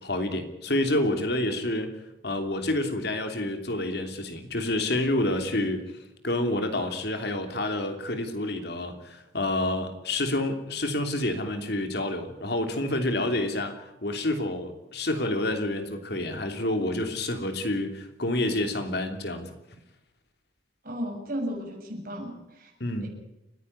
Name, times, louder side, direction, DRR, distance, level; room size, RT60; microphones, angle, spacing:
voice 1, 0.0-1.9 2.2-5.9 6.2-19.5 22.8-23.1, left 1 dB, 55° left, 6 dB, 3.0 m, -28 dB
voice 2, 20.8-22.7 23.0-23.1, equal, 50° right, 0 dB, 7.2 m, -34 dB
30.0 x 10.0 x 9.6 m, 0.91 s
head